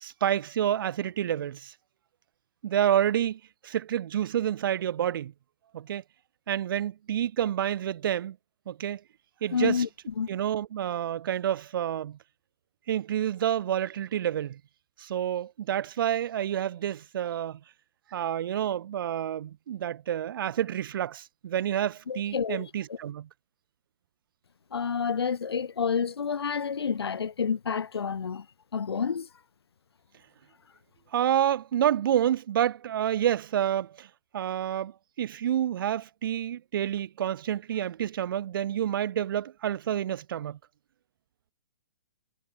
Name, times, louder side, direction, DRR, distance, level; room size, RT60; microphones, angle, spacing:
voice 1, 0.0-1.7 2.6-5.3 5.7-6.0 6.5-8.4 8.7-9.0 9.4-9.8 10.3-12.2 12.9-14.6 15.0-17.6 18.1-23.3 31.1-34.1 34.3-40.6, right 10 dB, 60° right, 0.4 m, -28 dB
voice 2, 9.5-9.9 10.2-10.3 22.1-23.0 24.7-28.5 28.7-29.3, left 6 dB, 85° left, 0.8 m, -29 dB
hypercardioid pair, 135°, 13 cm